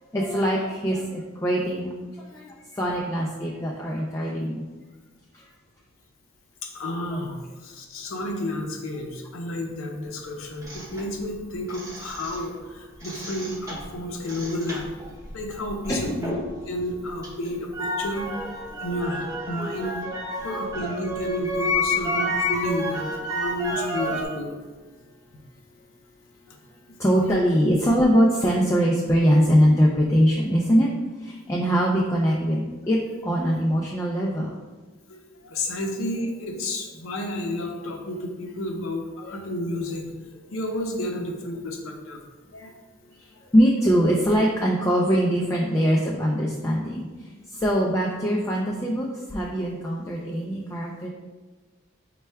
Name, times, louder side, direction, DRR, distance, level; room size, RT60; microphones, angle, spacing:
voice 1, 0.1-1.9 2.3-4.6 15.9-16.2 18.7-18.8 27.0-30.9 31.2-33.0 33.2-34.5 43.5-47.1 47.5-51.1, equal, 15° left, -3 dB, 0.3 m, -22 dB
voice 2, 6.6-15.0 15.3-16.4 16.7-18.3 18.8-20.0 20.3-24.5 26.5-26.6 35.1-42.2 42.5-42.7 43.4-43.5 47.5-47.9, left 1 dB, 75° left, 3 dB, 0.6 m, -31 dB
sound 1, 10.6-12.6 12.9-16.6 16.9-24.3, left 1 dB, 15° right, 0.7 m, -30 dB
4.4 x 2.2 x 3.2 m, 1.3 s
head